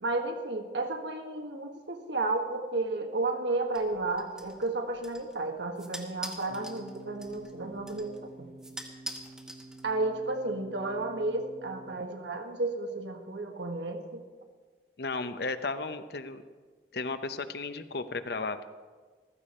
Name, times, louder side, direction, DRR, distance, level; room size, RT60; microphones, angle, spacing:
voice 1, 0.0-8.5 9.8-14.2, right 2 dB, 90° right, 4 dB, 1.5 m, -32 dB
sound 1, 3.7-10.2, right 1 dB, 5° right, 1.0 m, -46 dB
sound 2, 6.5-11.9, right 2 dB, 40° right, 1.4 m, -50 dB
voice 2, 15.0-16.4 16.9-18.7, left 3 dB, 65° left, 10 dB, 0.8 m, -34 dB
15.0 x 13.5 x 4.3 m, 1.5 s
head